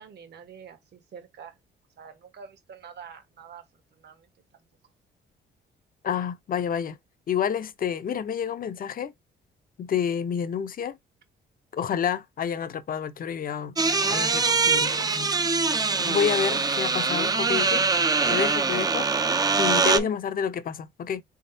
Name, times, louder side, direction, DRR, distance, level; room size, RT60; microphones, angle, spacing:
voice 1, 0.0-1.6 2.0-3.7 3.9-4.6 15.9-16.6 18.4-18.7 19.8-20.1, right 7 dB, 55° right, 1.2 m, -44 dB
voice 2, 6.0-7.0 7.3-9.1 9.8-11.0 11.7-13.8 14.1-15.4 16.0-17.8 18.3-19.0 19.6-21.2, left 8 dB, 45° left, 0.6 m, -29 dB
sound 1, 13.8-20.0, right 4 dB, 20° right, 0.5 m, -23 dB
3.6 x 3.6 x 2.7 m
cardioid pair, 90°, 20 cm